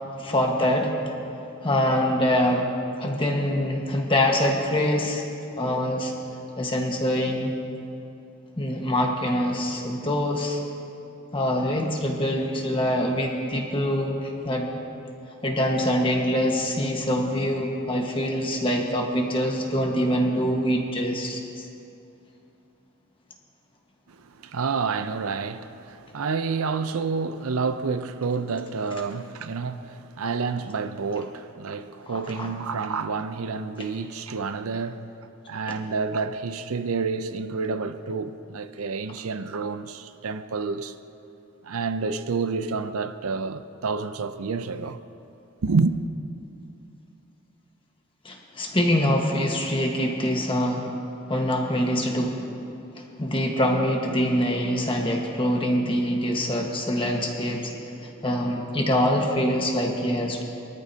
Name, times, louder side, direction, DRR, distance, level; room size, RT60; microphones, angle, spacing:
voice 1, 0.2-1.0 1.6-2.7 3.0-5.2 5.6-6.1 6.6-7.6 8.6-10.6 11.3-14.7 15.4-21.7 32.1-32.5 35.7-35.8 48.2-51.0 51.3-52.4 53.0-57.7 58.2-60.4, equal, 25° left, 1.4 m, -24 dB
voice 2, 24.2-35.1 35.5-40.9 41.6-45.0 45.6-45.9, right 4 dB, 75° right, 0.5 m, -29 dB
22.5 x 13.5 x 2.8 m
head